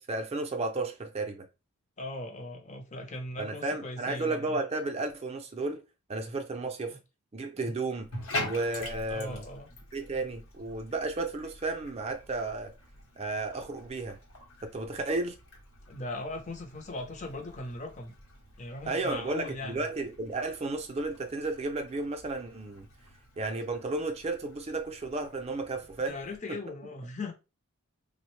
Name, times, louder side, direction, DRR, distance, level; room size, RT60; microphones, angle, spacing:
voice 1, 0.0-1.5 3.4-5.8 6.1-7.0 7.3-8.1 8.4-9.4 9.9-12.7 13.2-14.2 14.6-15.3 18.9-22.9 23.4-26.1, right 2 dB, 30° right, 0.4 m, -33 dB
voice 2, 2.0-4.6 6.9-7.0 9.1-9.7 15.9-18.2 18.6-19.8 25.8-27.3, left 2 dB, 30° left, 0.6 m, -39 dB
Bathtub (filling or washing), 8.0-26.4, left 2 dB, 70° left, 0.9 m, -45 dB
3.5 x 2.1 x 3.1 m
head